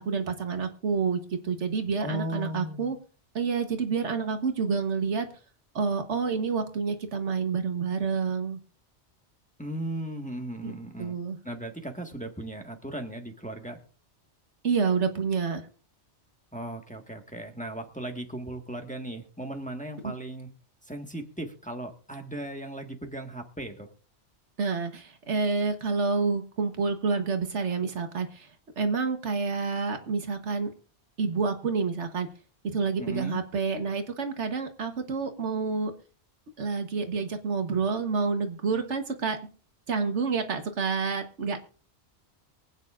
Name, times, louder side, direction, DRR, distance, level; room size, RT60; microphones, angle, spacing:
voice 1, 0.0-3.0 3.3-5.3 5.7-8.6 10.6-10.7 11.0-11.4 14.6-15.6 20.0-20.1 24.6-28.5 28.8-30.7 31.2-32.3 32.7-35.9 36.6-39.4 39.9-41.6, right 5 dB, 75° right, 7 dB, 1.5 m, -28 dB
voice 2, 2.0-2.9 9.6-11.1 11.4-13.8 16.5-20.5 20.9-23.9 33.0-33.4, right 1 dB, 5° left, 3 dB, 1.5 m, -37 dB
24.0 x 9.0 x 2.5 m, 0.38 s
omnidirectional pair, 1.2 m